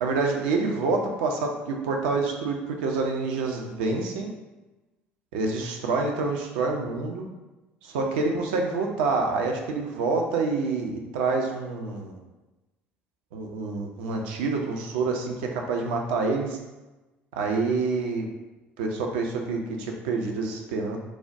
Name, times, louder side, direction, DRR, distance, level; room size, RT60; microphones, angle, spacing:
voice 1, 0.0-4.3 5.3-7.3 7.8-12.2 13.3-16.6 17.3-18.2 18.8-21.0, right 3 dB, 65° right, 2 dB, 0.4 m, -27 dB
3.2 x 2.1 x 2.6 m, 1.1 s
figure-of-eight pair, 55°, 6 cm